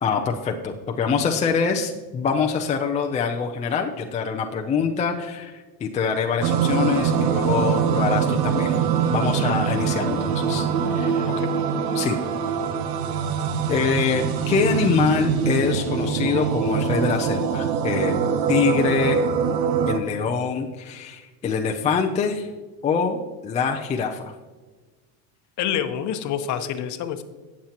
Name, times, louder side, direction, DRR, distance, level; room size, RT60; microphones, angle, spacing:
voice 1, 0.0-8.7 9.1-10.7 10.9-11.3 11.9-12.2 13.7-18.2 18.5-19.2 19.9-22.5 22.8-24.3, left 6 dB, 15° left, 2 dB, 0.4 m, -24 dB
sound 1, 6.4-20.0, right 7 dB, 80° right, 1.0 m, -23 dB
voice 2, 25.6-27.2, left 9 dB, 40° left, 8 dB, 0.8 m, -27 dB
16.5 x 7.3 x 2.9 m, 1.3 s
supercardioid pair, 140°, 45 cm